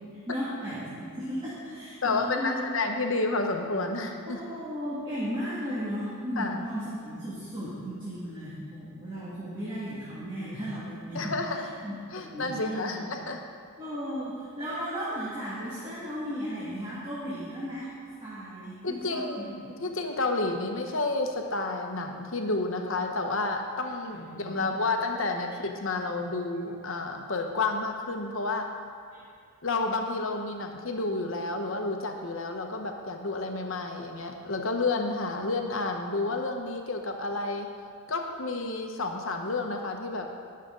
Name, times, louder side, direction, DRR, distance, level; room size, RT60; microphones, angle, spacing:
voice 1, 0.3-2.6 4.3-13.2 13.8-19.8 24.1-24.7 29.1-29.2, equal, 20° right, -10 dB, 2.1 m, -35 dB
voice 2, 2.0-4.4 6.4-6.6 11.1-11.7 12.1-13.4 18.8-28.7 29.6-37.7 38.1-40.3, left 3 dB, 60° left, 3 dB, 1.0 m, -30 dB
20.0 x 6.7 x 3.9 m, 2.3 s
head